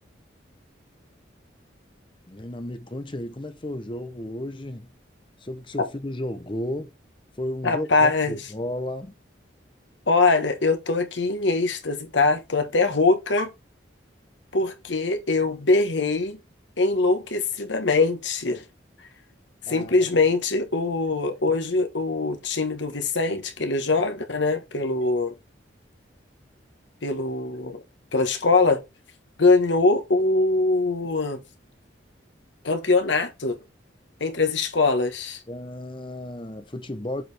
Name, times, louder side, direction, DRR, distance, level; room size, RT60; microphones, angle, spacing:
voice 1, 2.3-4.9 5.4-6.9 7.4-9.1 19.7-20.1 35.5-37.2, left 1 dB, 25° left, 0.8 m, -33 dB
voice 2, 7.6-8.4 10.1-13.5 14.5-16.4 16.8-18.6 19.7-25.3 27.0-27.8 28.1-28.8 29.4-31.4 32.6-33.6 34.2-35.4, left 3 dB, 75° left, 1.3 m, -22 dB
7.8 x 4.8 x 3.4 m
head